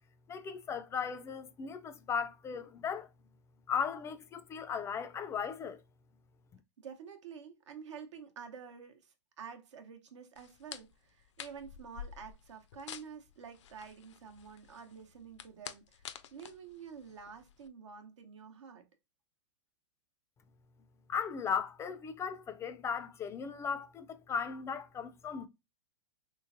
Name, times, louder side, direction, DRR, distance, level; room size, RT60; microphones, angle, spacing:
voice 1, 0.3-3.1 3.7-5.8 21.1-25.5, left 6 dB, 20° left, 0.3 m, -37 dB
voice 2, 6.8-18.9, right 6 dB, 80° right, 0.9 m, -49 dB
sound 1, 10.4-17.7, left 9 dB, 80° left, 0.5 m, -50 dB
3.2 x 3.1 x 2.5 m
hypercardioid pair, 125°, 15 cm